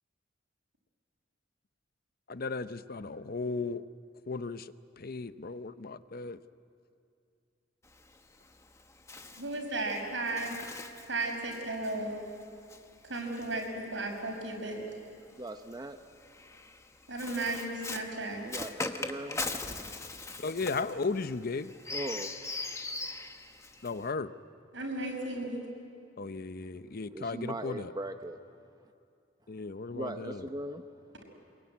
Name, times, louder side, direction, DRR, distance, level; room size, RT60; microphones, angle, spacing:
voice 1, 2.3-3.8 4.3-6.4 20.4-21.7 23.8-24.3 26.2-27.9 29.5-30.5, left 4 dB, 50° left, 13 dB, 0.7 m, -35 dB
Bird, 7.8-14.4 15.3-24.1, left 3 dB, 15° left, 1.1 m, -41 dB
voice 2, 9.4-10.6 11.1-12.2 13.0-14.8 17.1-18.5 24.7-25.6, right 2 dB, 80° right, 1 dB, 5.7 m, -34 dB
voice 3, 15.4-16.0 18.4-19.4 21.9-22.3 22.6-22.9 27.1-28.4 29.9-30.8, right 1 dB, 20° right, 7 dB, 0.7 m, -39 dB
25.5 x 22.5 x 9.6 m, 2.5 s
head